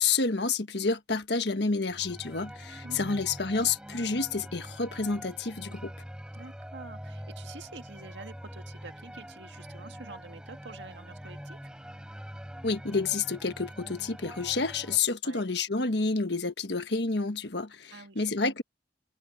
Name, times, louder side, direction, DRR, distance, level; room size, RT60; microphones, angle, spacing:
voice 1, 0.0-5.9 12.6-18.6, left 4 dB, 65° left, 1.4 m, -29 dB
sound 1, 1.9-15.0, equal, 5° right, 6.5 m, -44 dB
voice 2, 2.8-3.2 6.3-11.7 15.2-15.4 17.9-18.3, right 3 dB, 75° right, 1.8 m, -47 dB
head